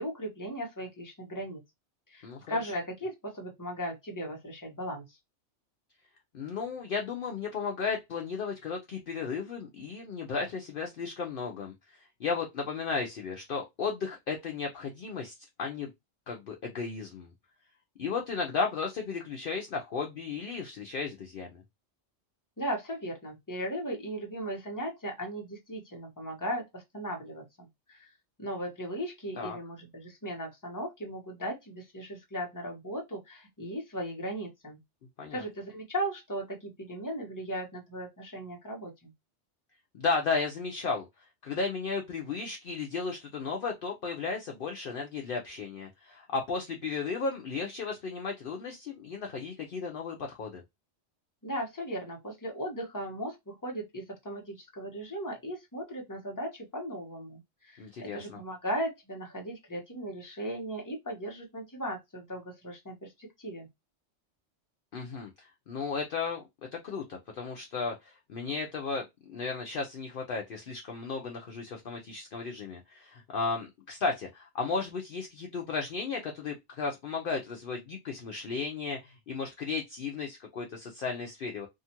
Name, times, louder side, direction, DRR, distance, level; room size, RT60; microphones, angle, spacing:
voice 1, 0.0-1.6 2.1-5.2 22.6-28.1 28.4-34.8 35.3-39.1 51.4-63.7, equal, 20° left, 0.9 m, -37 dB
voice 2, 2.2-2.7 6.3-15.9 16.3-17.3 18.0-21.6 29.4-29.6 35.2-35.4 39.9-41.1 41.4-50.6 57.8-58.4 64.9-66.4 66.7-81.7, left 4 dB, 55° left, 0.7 m, -34 dB
2.8 x 2.4 x 2.8 m
omnidirectional pair, 1.2 m